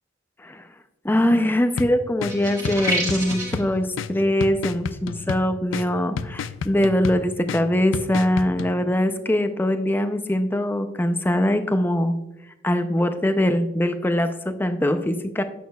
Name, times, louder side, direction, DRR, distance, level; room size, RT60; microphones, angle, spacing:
voice 1, 1.0-12.2 12.6-15.4, left 1 dB, 10° left, 8 dB, 0.4 m, -22 dB
sound 1, 1.8-8.7, left 5 dB, 80° left, 0.4 m, -32 dB
sound 2, 2.3-3.6, right 1 dB, 15° right, 3.1 m, -27 dB
10.5 x 8.5 x 2.3 m, 0.97 s
head